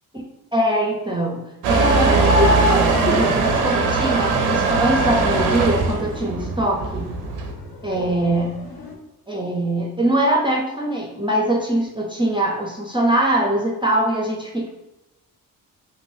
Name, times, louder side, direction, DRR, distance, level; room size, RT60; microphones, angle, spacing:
voice 1, 0.5-7.1 7.8-8.5 9.3-14.7, right 1 dB, 10° right, -1 dB, 0.6 m, -22 dB
Motor vehicle (road) / Engine starting / Accelerating revving vroom, 1.6-7.5, right 4 dB, 85° right, 0.6 m, -20 dB
sound 1, 1.8-9.0, left 2 dB, 50° left, 0.7 m, -36 dB
3.1 x 2.7 x 2.6 m, 0.97 s
hypercardioid pair, 45°, 45 cm